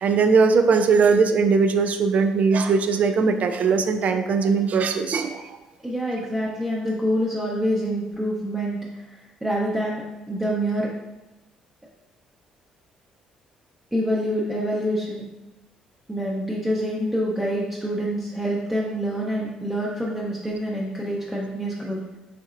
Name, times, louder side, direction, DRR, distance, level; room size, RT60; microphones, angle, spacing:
voice 1, 0.0-5.6, right 5 dB, 55° right, 7 dB, 0.4 m, -20 dB
voice 2, 5.8-9.0 9.4-10.9 13.9-15.2 16.1-22.0, equal, 10° right, -5 dB, 0.7 m, -26 dB
4.1 x 2.7 x 2.5 m, 1.0 s
hypercardioid pair, 55°, 3 cm